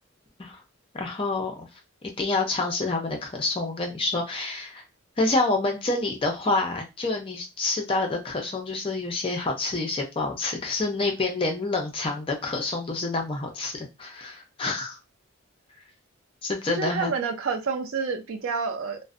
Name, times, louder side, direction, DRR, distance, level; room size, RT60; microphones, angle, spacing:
voice 1, 0.9-1.7 2.2-4.8 5.2-15.0 16.4-17.1, left 3 dB, 25° left, 0.4 m, -27 dB
voice 2, 16.7-19.0, right 5 dB, 70° right, 0.4 m, -29 dB
2.5 x 2.0 x 2.4 m
head